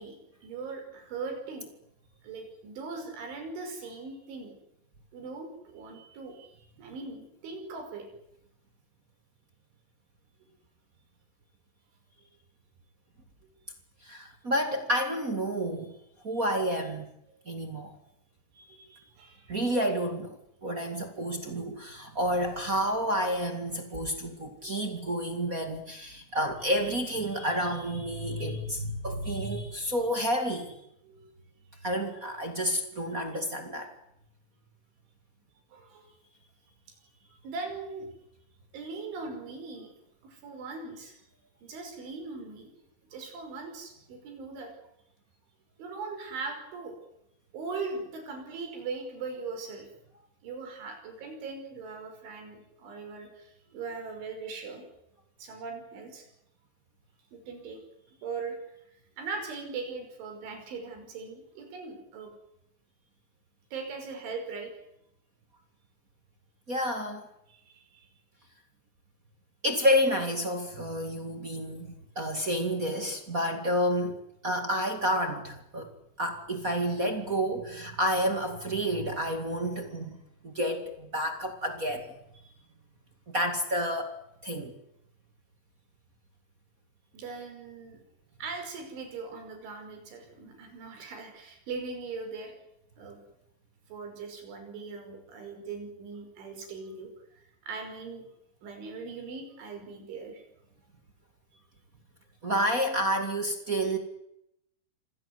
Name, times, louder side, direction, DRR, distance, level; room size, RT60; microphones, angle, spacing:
voice 1, 0.0-1.7 2.2-4.6 5.1-8.1 18.5-19.6 24.6-24.8 31.1-31.3 35.7-36.1 36.9-37.0 37.4-38.1 38.7-39.9 40.2-41.2 41.6-42.7 43.1-44.7 45.8-47.0 47.5-49.9 50.4-54.8 55.4-56.3 57.3-57.8 58.1-58.7 59.2-62.3 63.7-64.7 67.5-68.1 82.4-82.5 87.1-88.0 88.4-92.5 93.0-93.2 93.9-98.3 98.6-100.5, right 4 dB, 80° right, 5 dB, 8.0 m, -40 dB
voice 2, 14.0-16.0 16.2-17.1 17.4-17.9 19.5-30.7 31.8-33.9 66.7-67.3 69.6-80.2 80.4-82.1 83.3-84.1 84.4-84.7 102.4-104.0, equal, 35° right, 6 dB, 1.3 m, -30 dB
26.5 x 16.5 x 9.6 m, 0.81 s
omnidirectional pair, 5.4 m